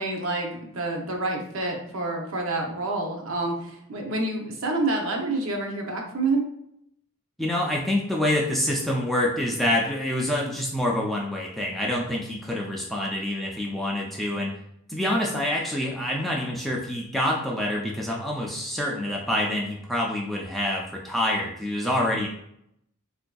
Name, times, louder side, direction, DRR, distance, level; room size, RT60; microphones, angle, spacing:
voice 1, 0.0-6.4, right 2 dB, 60° right, 1 dB, 0.6 m, -28 dB
voice 2, 7.4-14.5 14.9-22.3, left 1 dB, ahead, -3 dB, 0.3 m, -26 dB
3.7 x 2.5 x 2.2 m, 0.75 s
head